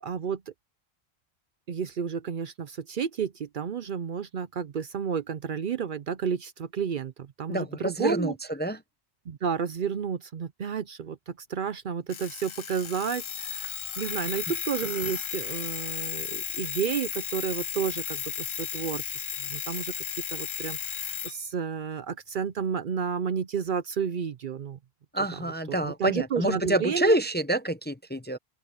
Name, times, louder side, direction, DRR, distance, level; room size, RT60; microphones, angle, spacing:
voice 1, 0.0-0.5 1.7-8.3 9.3-19.9 20.3-24.8 25.3-27.2, right 7 dB, 55° right, 0.7 m, -31 dB
voice 2, 7.5-8.8 25.1-28.4, right 1 dB, 10° left, 0.6 m, -27 dB
Alarm, 12.1-21.4, left 7 dB, 55° left, 0.3 m, -34 dB
open air
omnidirectional pair, 1.1 m